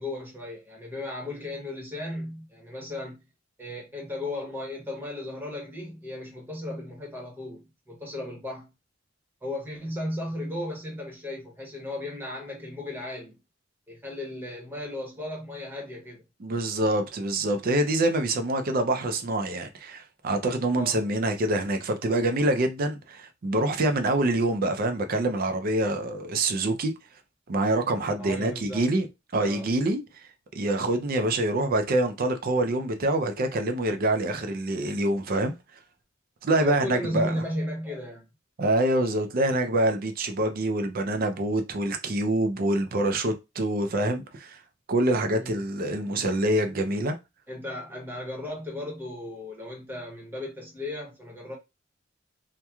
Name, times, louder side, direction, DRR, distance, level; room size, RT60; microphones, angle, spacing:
voice 1, 0.0-3.2 3.6-8.7 9.4-13.4 13.9-16.2 20.7-21.0 28.2-28.9 29.4-29.7 36.5-38.3 45.3-45.6 47.5-51.5, left 1 dB, 10° right, 0.9 m, -35 dB
voice 2, 16.4-26.9 27.5-29.1 29.3-30.0 30.5-35.5 36.4-37.4 38.6-44.6 44.9-47.2, right 1 dB, 45° right, 0.4 m, -26 dB
2.9 x 2.2 x 2.3 m
head